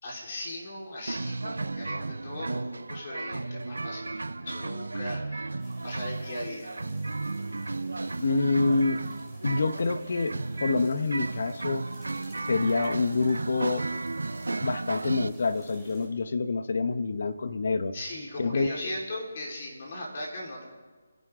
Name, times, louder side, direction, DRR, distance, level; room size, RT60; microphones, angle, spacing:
voice 1, 0.0-6.7 17.9-20.6, left 1 dB, 45° left, -3 dB, 4.5 m, -38 dB
sound 1, 1.1-15.3, right 3 dB, 85° right, 0.6 m, -34 dB
sound 2, 5.6-16.1, equal, 10° left, 4.4 m, -54 dB
voice 2, 8.2-9.0 9.4-11.8 12.5-13.9 14.6-17.9 18.4-18.7, left 3 dB, 60° left, 10 dB, 1.2 m, -27 dB
30.0 x 11.0 x 3.9 m, 1.5 s
figure-of-eight pair, 160°, 0 cm